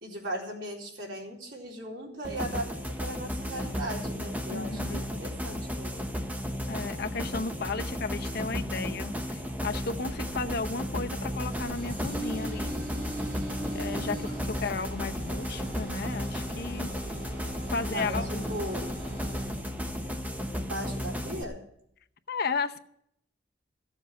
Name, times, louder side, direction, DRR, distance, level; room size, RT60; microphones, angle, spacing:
voice 1, 0.0-5.9 17.9-18.2 18.5-18.9 20.6-21.6, right 1 dB, 90° right, -2 dB, 4.0 m, -38 dB
sound 1, 2.2-21.4, equal, 10° right, 1.1 m, -34 dB
voice 2, 4.5-5.0 6.7-12.7 13.7-16.9 17.7-18.4 22.3-22.8, left 4 dB, 60° left, 7 dB, 0.8 m, -34 dB
sound 2, 9.9-20.2, right 1 dB, 60° right, 2.4 m, -41 dB
15.0 x 7.4 x 8.0 m, 0.70 s
head